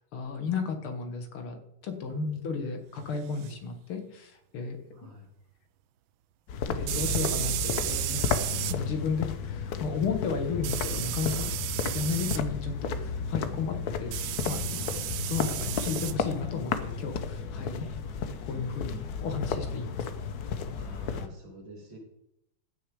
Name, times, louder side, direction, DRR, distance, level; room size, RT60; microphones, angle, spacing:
voice 1, 0.1-2.1 2.4-5.1 6.7-8.3 8.6-11.5 11.9-14.2 14.5-14.8 15.3-18.0 18.5-20.1 20.4-20.5, left 5 dB, 90° left, 6 dB, 2.4 m, -34 dB
voice 2, 2.1-2.7 4.9-5.3 20.7-22.0, left 1 dB, 60° right, 1 dB, 3.2 m, -39 dB
sound 1, 3.4-3.5 6.9-8.8 10.6-12.4 14.1-16.2, right 14 dB, 80° right, 1.4 m, -33 dB
sound 2, 6.5-21.3, left 6 dB, 60° left, 1.1 m, -33 dB
sound 3, 6.6-8.6 10.4-12.4 14.3-14.4, left 1 dB, 25° left, 1.9 m, -40 dB
15.0 x 6.4 x 4.9 m, 0.79 s
omnidirectional pair, 2.3 m